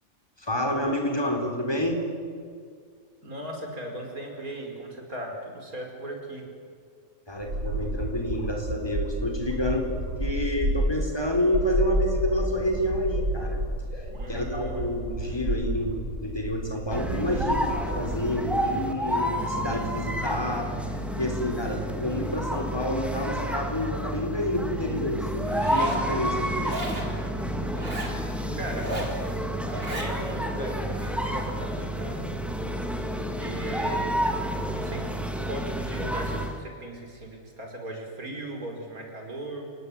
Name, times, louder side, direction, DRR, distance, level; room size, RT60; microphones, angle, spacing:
voice 1, 0.4-2.1 7.3-13.6 13.9-14.0 14.3-20.7 21.2-26.8, left 1 dB, 15° left, 2 dB, 4.1 m, -29 dB
voice 2, 3.2-6.5 14.1-15.0 28.6-29.2 29.9-32.3 33.4-34.2 34.7-35.1 35.4-39.7, right 1 dB, 85° right, 2 dB, 5.4 m, -37 dB
sound 1, 7.3-18.2, right 1 dB, 60° right, 5.4 m, -30 dB
sound 2, 16.9-36.6, equal, ahead, 2.3 m, -30 dB
Zipper (clothing), 25.5-26.0 26.6-27.1 27.7-28.2 28.7-29.2 29.7-30.1, right 1 dB, 40° right, 3.7 m, -35 dB
28.5 x 18.0 x 9.9 m, 2.2 s
omnidirectional pair, 1.5 m